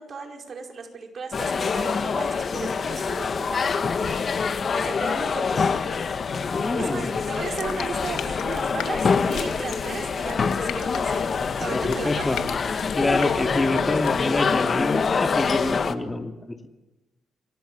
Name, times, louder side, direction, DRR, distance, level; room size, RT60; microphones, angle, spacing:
voice 1, 0.0-5.7 6.8-11.3 11.6-12.4, right 5 dB, 45° right, 3 dB, 5.0 m, -36 dB
sound 1, 1.3-15.9, left 5 dB, 40° left, 1.5 m, -25 dB
voice 2, 6.5-7.2 11.7-12.4 12.9-16.6, left 2 dB, 15° left, 5 dB, 2.4 m, -27 dB
sound 2, 7.1-14.4, left 8 dB, 85° left, 2.6 m, -38 dB
30.0 x 23.5 x 6.9 m, 1.1 s
cardioid pair, 135°, 0 cm